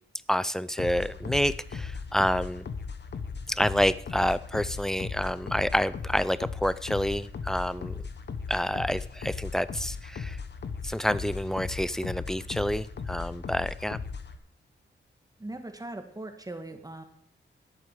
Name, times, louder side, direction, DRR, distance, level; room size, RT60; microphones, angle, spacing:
voice 1, 0.3-2.6 3.5-7.9 8.5-10.4 10.8-14.0, equal, ahead, 17 dB, 0.4 m, -28 dB
sound 1, 0.8-14.4, left 5 dB, 60° left, 1.2 m, -37 dB
voice 2, 15.4-17.0, right 2 dB, 20° right, 6 dB, 1.5 m, -39 dB
11.5 x 8.5 x 6.5 m, 0.69 s
wide cardioid pair, 100°, 20 cm